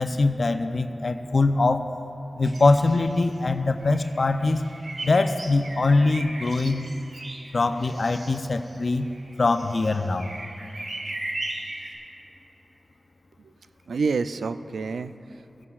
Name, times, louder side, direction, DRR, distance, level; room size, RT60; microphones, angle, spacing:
voice 1, 0.0-1.9 2.4-4.6 5.0-6.9 7.5-9.1 9.4-10.3, left 3 dB, 65° left, 8 dB, 0.5 m, -22 dB
sound 1, 2.4-3.5 3.8-12.0, right 2 dB, 60° right, 1.3 m, -38 dB
voice 2, 13.9-15.7, right 4 dB, 90° right, 12 dB, 0.3 m, -29 dB
19.0 x 8.3 x 2.4 m, 3.0 s
cardioid pair, 40°, 0 cm